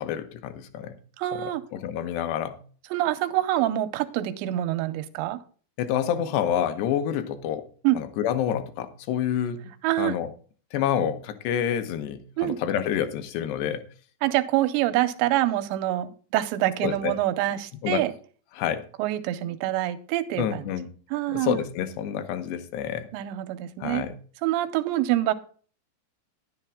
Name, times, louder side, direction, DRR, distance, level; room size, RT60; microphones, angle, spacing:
voice 1, 0.0-1.0 1.3-2.6 5.8-7.7 8.0-9.7 10.0-10.3 10.7-13.8 16.8-17.1 17.8-18.1 18.5-18.8 20.4-20.9 21.3-23.1 23.8-24.2, left 9 dB, 75° left, 10 dB, 3.0 m, -28 dB
voice 2, 1.2-1.6 2.9-5.4 7.8-8.0 9.8-10.1 12.4-12.6 14.2-18.1 19.0-20.6 21.1-21.6 23.1-24.0 24.4-25.3, right 14 dB, 85° right, 10 dB, 2.9 m, -26 dB
11.0 x 10.5 x 3.6 m, 0.42 s
omnidirectional pair, 5.1 m